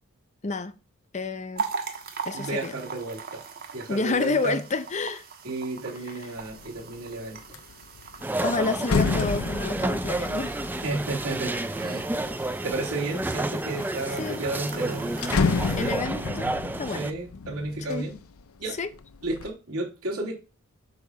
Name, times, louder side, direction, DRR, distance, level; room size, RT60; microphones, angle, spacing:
voice 1, 0.4-0.7 1.1-1.7 2.3-2.7 3.9-5.2 8.4-10.6 12.2-12.4 14.2-14.4 15.8-16.5 16.8-17.1 17.9-18.1 18.8-18.9, left 3 dB, 30° left, 0.6 m, -29 dB
sound 1, 1.6-16.0, right 5 dB, 45° right, 1.3 m, -41 dB
voice 2, 2.3-3.4 3.7-4.6 5.4-7.6 10.8-12.2 12.6-15.3 16.9-18.1 18.6-18.8 19.2-20.3, right 2 dB, 75° right, 3.1 m, -32 dB
sound 2, 6.4-6.8 7.2-12.5 13.1-13.8 14.2-14.3 14.5-18.5 18.9-19.5, left 4 dB, 70° left, 0.6 m, -30 dB
sound 3, 8.2-17.1, right 2 dB, 10° right, 0.4 m, -30 dB
8.1 x 2.9 x 6.3 m
head